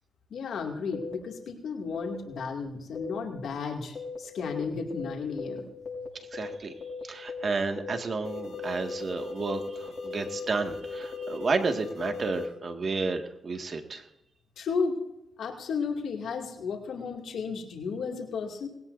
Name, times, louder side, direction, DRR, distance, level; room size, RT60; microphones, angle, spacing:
voice 1, 0.3-5.7 14.6-15.0 15.4-18.7, left 5 dB, 80° left, 1 dB, 2.5 m, -33 dB
sound 1, 0.9-1.1 1.9-2.2 3.0-3.2 4.0-4.2 4.4-4.6 4.9-5.1 5.4-5.6 5.9-6.1 6.3-6.5 6.8-7.0 7.3-7.5 7.8-8.0 8.2-12.5, left 4 dB, 60° left, 6.5 m, -37 dB
voice 2, 6.3-6.7 7.0-14.0, right 4 dB, 50° right, 5 dB, 2.0 m, -31 dB
20.0 x 17.5 x 2.7 m, 0.85 s
cardioid pair, 75°, 0 cm